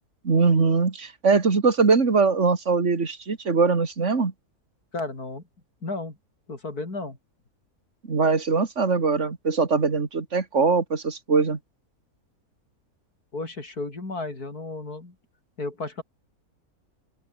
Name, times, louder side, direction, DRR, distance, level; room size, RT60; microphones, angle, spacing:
voice 1, 0.2-4.3 8.1-11.6, right 4 dB, 50° right, 2.7 m, -22 dB
voice 2, 4.9-5.4 5.8-6.2 6.5-7.2 13.3-15.1 15.6-16.0, left 2 dB, 85° left, 5.6 m, -33 dB
open air
omnidirectional pair, 1.6 m